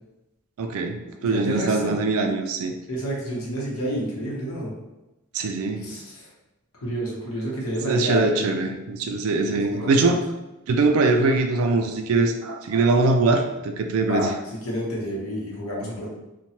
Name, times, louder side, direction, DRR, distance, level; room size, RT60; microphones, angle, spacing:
voice 1, 0.6-2.7 5.3-5.9 7.9-10.2 10.7-14.3, right 3 dB, 80° right, 5 dB, 0.4 m, -22 dB
voice 2, 1.2-1.9 2.9-4.7 5.8-6.3 6.8-8.4 9.0-9.1 9.4-10.2 14.1-16.1, equal, 85° left, -4 dB, 0.9 m, -29 dB
3.0 x 2.2 x 2.8 m, 0.98 s
head